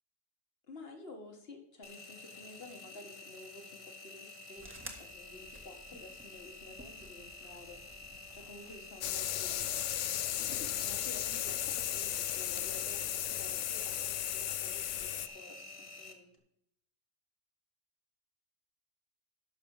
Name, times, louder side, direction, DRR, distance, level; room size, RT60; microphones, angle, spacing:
voice 1, 0.7-7.8 8.3-9.7 10.5-16.3, left 2 dB, 50° left, 4 dB, 1.9 m, -51 dB
Engine, 1.8-16.1, left 3 dB, 25° left, 1.2 m, -50 dB
sound 1, 4.6-9.7, right 1 dB, 10° right, 1.4 m, -54 dB
sound 2, 9.0-15.3, left 12 dB, 70° left, 0.9 m, -35 dB
11.0 x 6.7 x 4.8 m, 0.77 s
omnidirectional pair, 1.4 m